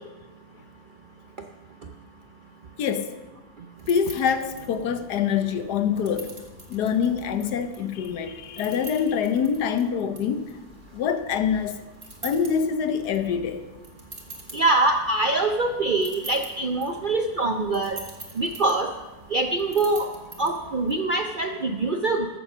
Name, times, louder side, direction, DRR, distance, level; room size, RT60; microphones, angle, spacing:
voice 1, 2.8-3.2 3.9-6.4 6.7-10.5 10.9-11.8 12.2-13.6, left 7 dB, 80° left, 1.4 m, -25 dB
sound 1, 3.8-21.0, right 2 dB, 30° right, 1.9 m, -46 dB
voice 2, 14.5-18.0 18.4-18.9 19.3-20.1 20.4-22.3, right 2 dB, 55° right, 0.5 m, -24 dB
14.0 x 7.1 x 6.1 m
omnidirectional pair, 1.7 m